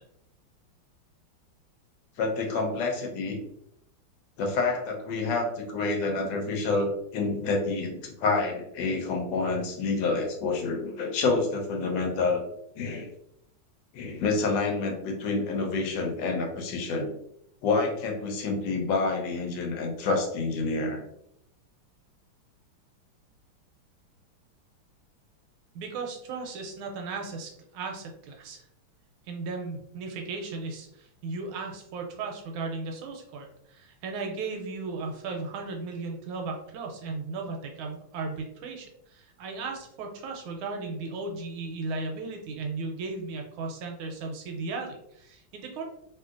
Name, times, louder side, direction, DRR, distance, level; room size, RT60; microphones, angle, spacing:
voice 1, 2.2-3.4 4.4-12.4 12.8-13.1 13.9-17.1 17.6-21.0, left 3 dB, 70° left, 1 dB, 1.2 m, -28 dB
voice 2, 25.7-28.6 29.3-45.8, right 3 dB, 80° right, 2 dB, 1.4 m, -36 dB
3.1 x 2.7 x 2.4 m, 0.75 s
omnidirectional pair, 2.3 m